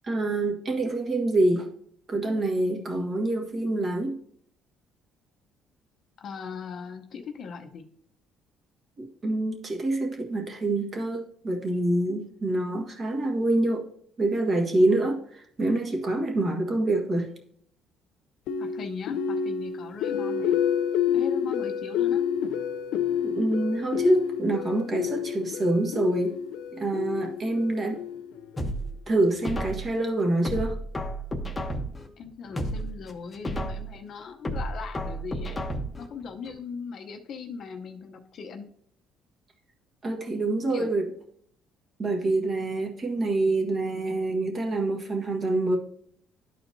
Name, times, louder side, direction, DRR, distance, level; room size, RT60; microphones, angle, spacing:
voice 1, 0.0-1.7 2.1-4.2 9.0-13.9 14.2-17.3 23.2-26.4 26.7-28.0 29.1-30.8 40.0-41.0 42.0-45.8, right 2 dB, 35° right, 2 dB, 1.5 m, -26 dB
voice 2, 6.2-7.9 18.6-20.6 21.1-22.2 32.2-35.6 36.0-38.7 40.7-40.9, left 5 dB, 50° left, 5 dB, 0.7 m, -39 dB
sound 1, 18.5-28.6, left 8 dB, 85° left, 0.5 m, -29 dB
sound 2, 28.6-30.0 30.4-32.1 32.4-34.0 34.4-36.1 36.4-36.5, right 1 dB, 15° left, 0.9 m, -32 dB
12.0 x 4.4 x 2.7 m, 0.65 s
cardioid pair, 120°, 0 cm